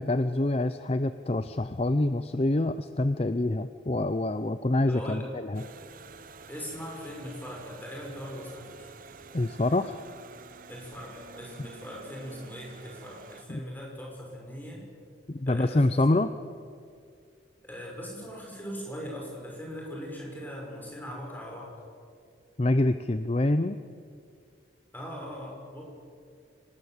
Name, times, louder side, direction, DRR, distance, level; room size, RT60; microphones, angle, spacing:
voice 1, 0.0-5.6 9.3-10.0 13.5-13.6 15.3-16.3 22.6-23.8, left 2 dB, 35° left, 11 dB, 0.6 m, -26 dB
voice 2, 4.9-5.3 6.5-8.9 10.7-14.8 15.5-16.0 17.6-21.7 24.9-25.8, equal, 10° left, -2 dB, 6.3 m, -40 dB
sound 1, 5.5-13.4, right 4 dB, 45° right, 0.8 m, -49 dB
25.0 x 19.5 x 8.1 m, 2.3 s
head